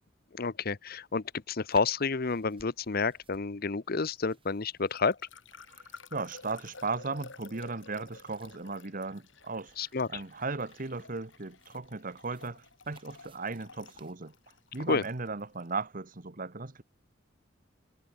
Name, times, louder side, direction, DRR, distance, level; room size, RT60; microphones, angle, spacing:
voice 1, 0.3-5.2 9.8-10.2 14.9-15.0, left 4 dB, 55° left, 0.8 m, -30 dB
sound 1, 1.7-15.0, right 3 dB, 30° right, 7.0 m, -61 dB
sound 2, 4.9-15.7, left 4 dB, 90° left, 6.7 m, -52 dB
voice 2, 5.8-9.7 10.1-14.3 14.7-16.8, right 3 dB, 45° right, 1.3 m, -36 dB
head